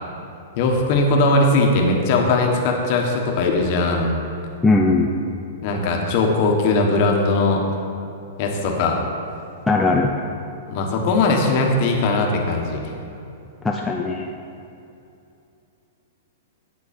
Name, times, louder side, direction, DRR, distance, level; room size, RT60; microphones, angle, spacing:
voice 1, 0.6-4.2 5.6-7.6 8.4-9.0 10.7-12.9, left 2 dB, 40° left, 1 dB, 1.3 m, -19 dB
voice 2, 4.6-5.1 9.7-10.2 13.6-14.3, left 3 dB, 5° left, -1 dB, 0.4 m, -19 dB
10.0 x 7.8 x 4.3 m, 2.7 s
hypercardioid pair, 160°, 0 cm